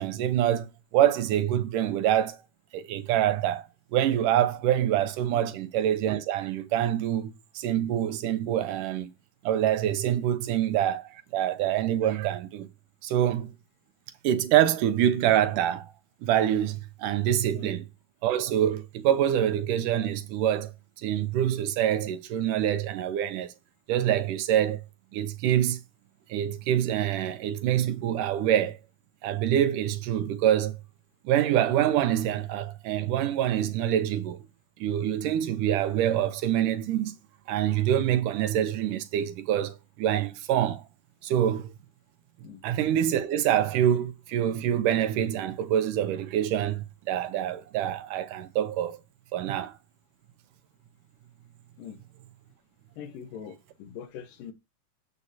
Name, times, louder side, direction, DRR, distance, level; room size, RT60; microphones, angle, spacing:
voice 1, 0.0-2.4 2.7-9.1 9.4-12.7 13.0-13.5 14.2-15.9 16.2-17.9 18.2-20.7 21.0-23.5 23.9-24.8 25.1-25.8 26.3-28.8 29.2-30.8 31.3-34.4 34.8-37.2 37.5-40.8 41.2-41.7 42.6-49.0 49.3-49.7, right 11 dB, 75° right, 2.4 m, -26 dB
voice 2, 53.0-54.5, left 8 dB, 80° left, 2.9 m, -42 dB
9.6 x 8.2 x 2.8 m
omnidirectional pair, 3.8 m